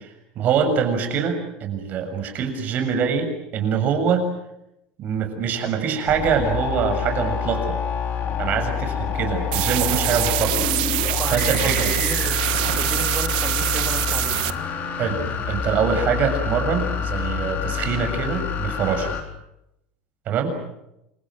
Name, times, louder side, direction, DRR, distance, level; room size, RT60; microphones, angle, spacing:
voice 1, 0.4-3.3 3.5-4.3 5.0-7.8 8.4-10.7 11.3-11.9 15.0-15.2 15.5-19.1 20.3-20.5, right 6 dB, 35° right, 6 dB, 7.0 m, -24 dB
sound 1, 6.1-19.2, left 7 dB, 35° left, 4.3 m, -27 dB
sound 2, 9.5-14.5, right 19 dB, 75° right, 1.5 m, -24 dB
voice 2, 11.2-12.4 12.8-14.4, right 5 dB, 20° right, 5 dB, 3.4 m, -33 dB
29.0 x 26.5 x 6.5 m, 0.84 s
cardioid pair, 165°, 5 cm